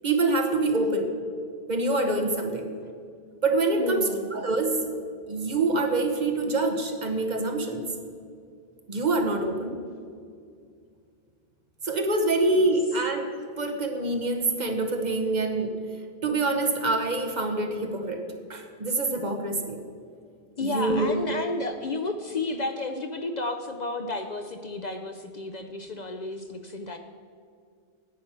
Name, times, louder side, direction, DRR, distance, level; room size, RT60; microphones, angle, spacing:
voice 1, 0.0-1.1 1.7-2.7 3.4-4.8 5.3-7.9 8.9-9.8 11.8-13.3 13.6-15.7 16.2-18.2 18.5-19.8 20.6-21.1, right 2 dB, 45° right, 4 dB, 1.1 m, -25 dB
voice 2, 3.8-4.3 12.5-12.6 20.6-27.0, left 2 dB, 50° left, 6 dB, 0.6 m, -32 dB
9.4 x 8.6 x 5.7 m, 2.3 s
omnidirectional pair, 1.0 m